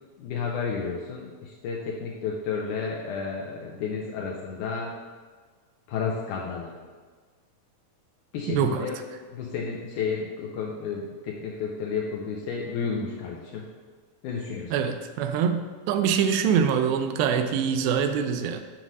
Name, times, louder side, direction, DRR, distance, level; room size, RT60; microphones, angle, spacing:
voice 1, 0.2-4.9 5.9-6.8 8.3-9.0 9.3-13.7 14.2-14.8, left 5 dB, 85° left, -1 dB, 1.8 m, -31 dB
voice 2, 8.5-8.9 14.7-15.6 15.9-18.6, right 7 dB, 85° right, 7 dB, 2.3 m, -24 dB
7.2 x 6.0 x 2.7 m, 1.5 s
omnidirectional pair, 4.1 m